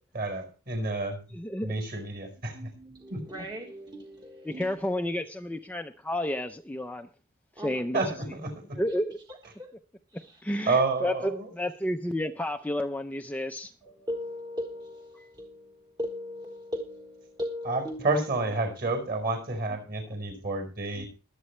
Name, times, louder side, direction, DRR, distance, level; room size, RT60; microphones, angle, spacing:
voice 1, 0.1-1.2 1.6-2.7 3.1-3.2 7.9-8.8 10.7-11.5 17.6-21.1, right 3 dB, 45° right, 4.8 m, -29 dB
voice 2, 1.3-1.7 4.5-7.1 7.6-8.0 8.8-9.2 10.4-13.7, left 1 dB, 5° left, 0.6 m, -31 dB
voice 3, 2.5-4.8 7.6-7.9 8.9-9.0 9.3-9.7 10.1-10.7 13.8-18.3 19.7-19.8 20.3-20.4 20.9-21.0, equal, 20° right, 1.3 m, -39 dB
22.5 x 8.3 x 3.2 m
head